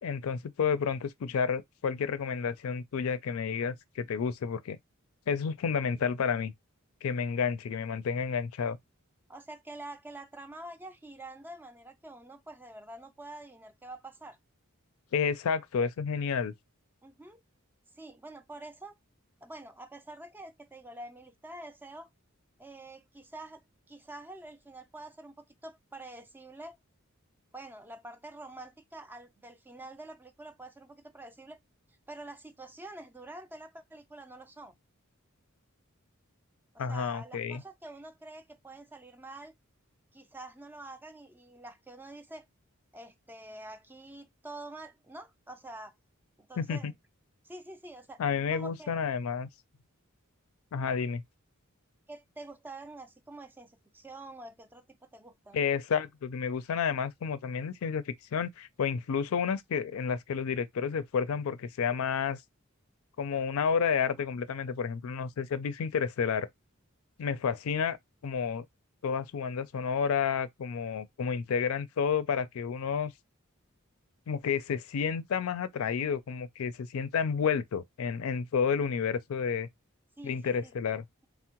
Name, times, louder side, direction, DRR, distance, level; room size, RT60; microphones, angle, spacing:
voice 1, 0.0-4.8 5.3-6.5 7.0-8.8 15.1-16.5 36.8-37.6 46.6-46.9 48.2-49.5 50.7-51.2 55.5-62.4 63.2-66.5 67.2-68.0 68.2-68.6 69.0-73.1 74.3-79.7 80.2-81.0, left 6 dB, 75° left, 0.4 m, -30 dB
voice 2, 9.3-14.4 17.0-17.4 18.0-19.0 19.4-22.1 22.6-26.8 27.5-31.6 32.1-34.7 36.7-39.5 40.1-42.5 42.9-45.9 46.4-46.9 47.4-48.2 48.5-48.9 52.1-55.6 80.2-80.7, right 2 dB, 10° right, 0.3 m, -47 dB
3.5 x 2.0 x 2.8 m
head